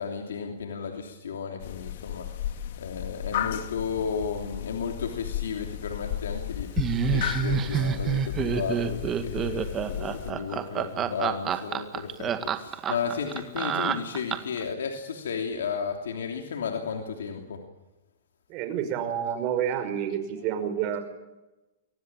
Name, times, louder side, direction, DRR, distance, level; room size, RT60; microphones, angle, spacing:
voice 1, 0.0-17.6, left 6 dB, 90° left, 3 dB, 3.1 m, -34 dB
sound 1, 1.6-10.3, left 11 dB, 65° left, 2.3 m, -34 dB
Laughter, 6.8-14.6, right 8 dB, 25° right, 1.9 m, -28 dB
voice 2, 18.5-21.0, right 9 dB, 40° right, 8 dB, 5.2 m, -29 dB
24.5 x 18.5 x 8.9 m, 1.0 s
hypercardioid pair, 140°, 0 cm